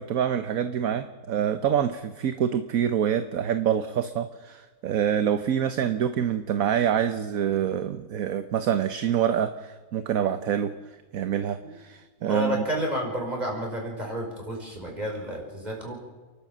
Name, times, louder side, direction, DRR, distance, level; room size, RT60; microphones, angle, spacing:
voice 1, 0.0-10.7 11.1-12.6, right 9 dB, 65° right, 10 dB, 1.3 m, -26 dB
voice 2, 12.3-16.0, equal, 25° right, 0 dB, 5.3 m, -31 dB
29.0 x 12.0 x 7.4 m, 1.4 s
omnidirectional pair, 1.6 m